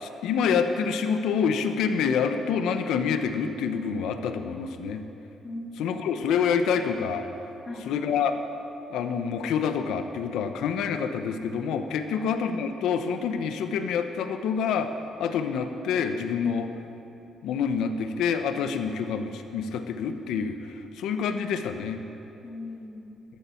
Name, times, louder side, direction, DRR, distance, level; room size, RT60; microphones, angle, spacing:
voice 1, 0.0-5.0 5.8-7.3 7.9-8.3 8.9-14.9 15.2-16.7 17.4-22.0, left 6 dB, 85° left, 7 dB, 0.9 m, -27 dB
voice 2, 5.4-6.1 7.6-7.9 12.1-12.3 22.4-23.2, left 1 dB, 35° left, -1 dB, 2.4 m, -39 dB
14.0 x 12.5 x 4.4 m, 2.9 s
cardioid pair, 90°, 0 cm